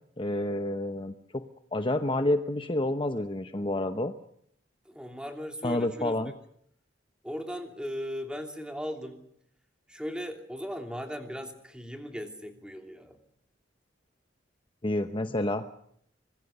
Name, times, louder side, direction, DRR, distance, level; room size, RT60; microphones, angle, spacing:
voice 1, 0.2-1.4 1.7-4.1 5.6-6.3 14.8-15.7, left 1 dB, 30° left, 8 dB, 0.9 m, -29 dB
voice 2, 4.8-6.3 7.2-9.2 9.9-13.2, equal, 5° right, 4 dB, 3.0 m, -38 dB
25.0 x 21.5 x 6.8 m, 0.70 s
head